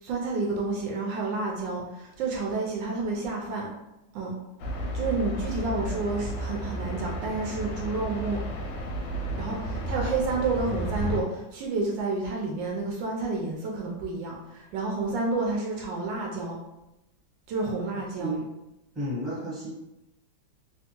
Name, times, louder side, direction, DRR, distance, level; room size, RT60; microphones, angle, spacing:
voice 1, 0.0-3.7 4.1-4.4 4.9-8.4 9.4-16.6 17.5-18.4, right 3 dB, 75° right, -1 dB, 1.2 m, -30 dB
sound 1, 4.6-11.2, equal, 75° left, 1.2 m, -32 dB
voice 2, 18.2-18.5 18.9-19.7, right 1 dB, ahead, -8 dB, 0.9 m, -32 dB
3.4 x 2.3 x 2.9 m, 0.94 s
omnidirectional pair, 2.1 m